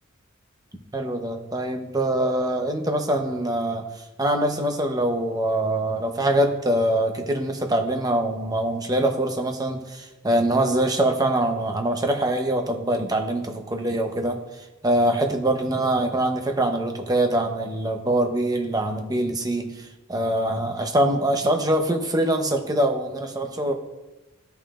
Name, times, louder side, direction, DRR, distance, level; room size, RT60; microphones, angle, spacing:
voice 1, 0.9-3.8 4.2-14.4 14.8-23.7, right 1 dB, 20° right, 4 dB, 0.9 m, -24 dB
15.0 x 5.5 x 2.5 m, 1.0 s
head